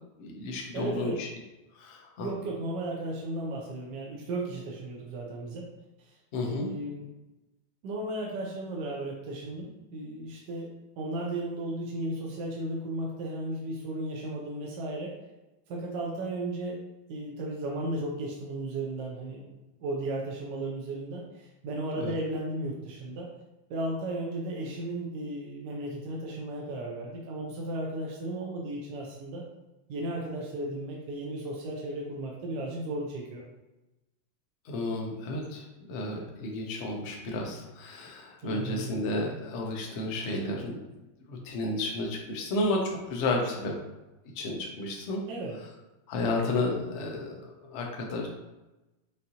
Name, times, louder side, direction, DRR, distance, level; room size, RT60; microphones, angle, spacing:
voice 1, 0.2-1.3 1.7-2.3 6.3-6.7 22.0-22.1 34.6-40.8 41.3-43.7 44.3-45.2 46.1-48.4, left 2 dB, 75° left, 0 dB, 0.6 m, -32 dB
voice 2, 0.7-1.2 2.2-5.7 6.1-6.2 6.4-7.1 7.8-10.7 11.0-15.1 15.7-16.8 17.1-19.5 19.8-23.3 23.7-29.4 29.9-33.4 38.4-38.9 45.3-45.5, right 2 dB, 70° right, -2 dB, 1.2 m, -35 dB
5.3 x 2.6 x 2.8 m, 1.0 s
omnidirectional pair, 2.2 m